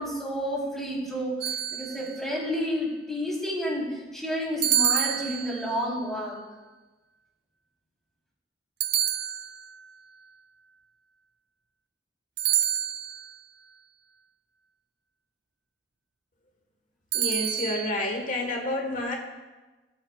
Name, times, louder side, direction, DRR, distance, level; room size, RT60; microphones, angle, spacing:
voice 1, 0.0-6.4, equal, ahead, -5 dB, 3.6 m, -30 dB
sound 1, 1.4-2.3 4.6-5.9 8.8-9.9 12.4-13.3 17.1-17.9, right 11 dB, 70° right, 0.5 m, -28 dB
voice 2, 17.1-19.2, left 2 dB, 50° left, 2 dB, 1.5 m, -29 dB
19.0 x 9.1 x 2.4 m, 1.2 s
head